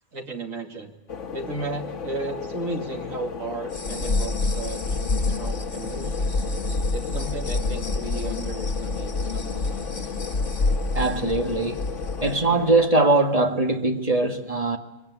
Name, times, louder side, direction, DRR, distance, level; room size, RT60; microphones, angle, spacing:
voice 1, 0.1-0.9 1.3-5.0 5.4-6.4 6.9-10.1, right 3 dB, 80° right, 2.9 m, -35 dB
sound 1, 1.1-12.9, left 6 dB, 65° left, 1.6 m, -35 dB
sound 2, 3.7-12.3, left 3 dB, 40° left, 2.3 m, -27 dB
voice 2, 10.9-11.8 12.2-14.8, right 2 dB, 25° right, 2.0 m, -21 dB
24.0 x 23.5 x 9.7 m
omnidirectional pair, 1.4 m